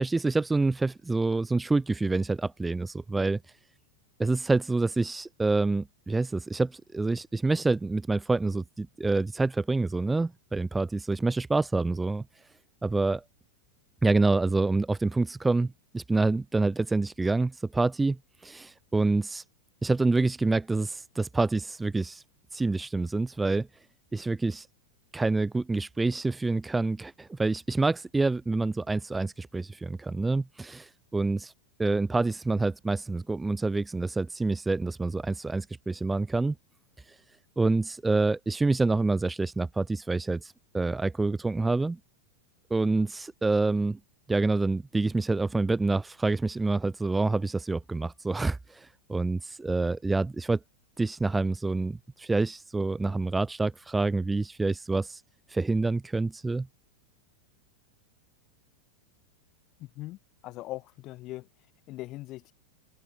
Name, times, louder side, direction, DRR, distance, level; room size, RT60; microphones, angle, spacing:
voice 1, 0.0-3.4 4.2-12.2 12.8-13.2 14.0-19.4 19.8-22.2 22.5-23.7 24.1-24.7 25.1-31.5 31.8-36.5 37.6-42.0 42.7-44.0 44.3-50.6 51.0-55.2 55.5-56.7, right 3 dB, 10° right, 2.5 m, -27 dB
voice 2, 60.4-61.4 61.9-62.5, left 17 dB, 35° left, 7.0 m, -39 dB
open air
figure-of-eight pair, 90°, 0 cm